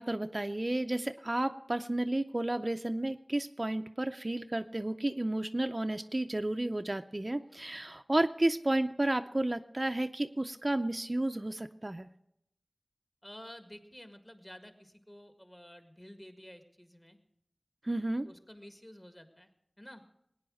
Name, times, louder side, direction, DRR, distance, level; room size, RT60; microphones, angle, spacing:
voice 1, 0.0-12.1 17.8-18.3, right 1 dB, 40° right, 8 dB, 0.5 m, -32 dB
voice 2, 13.2-17.2 18.2-19.5 19.8-20.0, equal, 20° left, 7 dB, 1.8 m, -51 dB
19.0 x 9.5 x 6.3 m, 0.79 s
wide cardioid pair, 50°, 0 cm